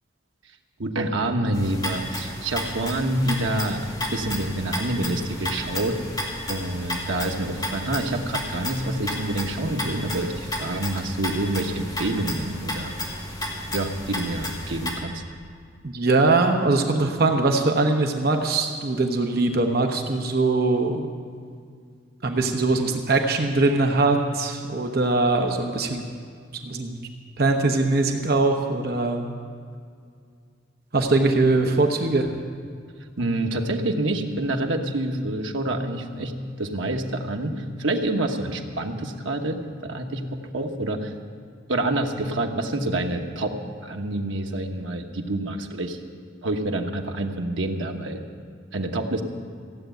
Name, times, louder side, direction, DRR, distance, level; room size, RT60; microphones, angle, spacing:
voice 1, 0.8-3.9 4.1-6.0 6.5-12.9 13.7-15.2 33.2-36.3 36.6-41.1 41.7-43.6 43.8-46.0 46.4-48.2 48.7-49.2, right 1 dB, 85° right, 3 dB, 1.2 m, -27 dB
sound 1, 1.5-14.9, left 1 dB, 20° left, 2.3 m, -32 dB
voice 2, 15.9-21.1 22.2-26.0 26.6-27.0 27.4-29.3 30.9-32.3, right 3 dB, 55° right, 3 dB, 1.0 m, -21 dB
15.5 x 8.2 x 9.1 m, 2.2 s
head